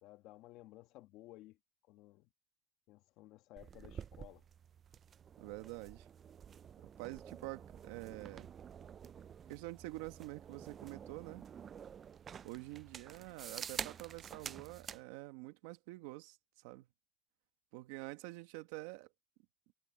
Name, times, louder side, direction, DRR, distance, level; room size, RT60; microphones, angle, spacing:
voice 1, 0.0-1.6 1.8-2.3 2.9-4.5, left 17 dB, 65° left, 1.5 m, -56 dB
sound 1, 3.6-15.0, right 8 dB, 30° right, 0.3 m, -49 dB
voice 2, 5.4-6.1 7.0-8.5 9.5-11.5 12.4-16.9 17.7-19.1, right 20 dB, 85° right, 1.4 m, -47 dB
cardioid pair, 130°, 0 cm